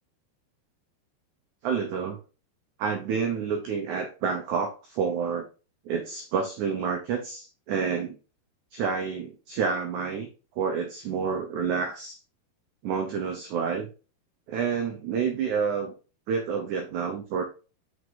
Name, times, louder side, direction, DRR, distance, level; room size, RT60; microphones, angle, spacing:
voice 1, 1.6-2.2 2.8-5.5 5.8-8.2 8.7-10.3 10.6-12.2 12.8-13.9 14.5-15.9 16.3-17.4, right 6 dB, 90° right, 4 dB, 1.7 m, -29 dB
5.8 x 4.8 x 3.9 m, 0.34 s
omnidirectional pair, 4.5 m